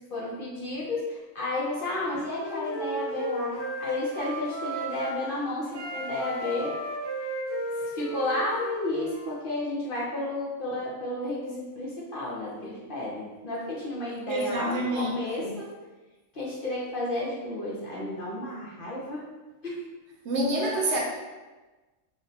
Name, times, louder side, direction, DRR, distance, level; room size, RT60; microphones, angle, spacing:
voice 1, 0.1-6.7 7.7-15.5 16.3-19.2 19.6-19.8, left 2 dB, 45° left, -6 dB, 0.9 m, -32 dB
Wind instrument woodwind instrument, 1.8-5.2 5.7-9.3, right 1 dB, 20° right, 1.0 m, -35 dB
voice 2, 14.3-15.5 20.3-21.0, right 1 dB, 65° right, -1 dB, 0.8 m, -27 dB
3.2 x 2.6 x 4.0 m, 1.2 s
omnidirectional pair, 1.4 m